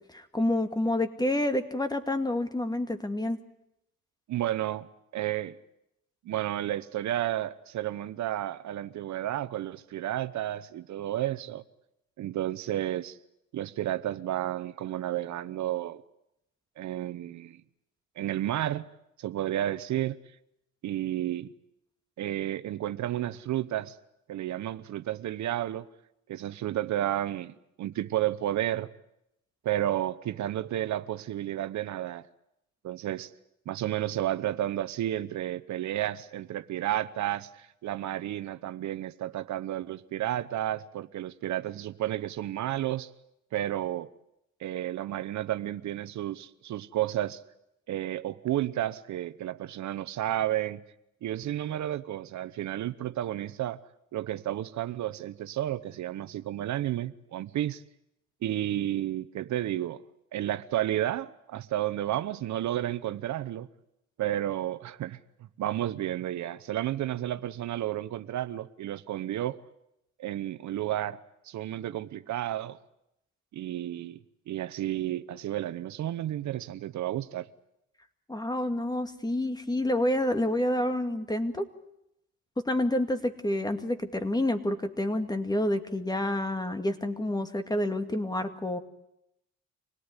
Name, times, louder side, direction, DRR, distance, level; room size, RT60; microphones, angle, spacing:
voice 1, 0.1-3.4 78.3-81.7 82.6-88.8, left 1 dB, 15° left, 2.1 m, -28 dB
voice 2, 4.3-4.9 5.1-5.6 6.2-11.6 12.2-13.2 13.5-16.0 16.8-17.6 18.2-18.8 19.2-20.2 20.8-21.5 22.2-24.0 24.3-25.9 26.3-28.9 29.6-32.2 32.8-33.3 33.7-43.1 43.5-44.1 44.6-47.4 47.9-50.8 51.2-53.8 54.1-57.8 58.4-60.0 60.3-63.7 64.2-65.2 65.6-69.6 70.2-71.2 71.4-72.8 73.5-74.2 74.5-77.5, right 13 dB, 70° right, 0.9 m, -32 dB
26.0 x 18.0 x 9.8 m
cardioid pair, 90°, 30 cm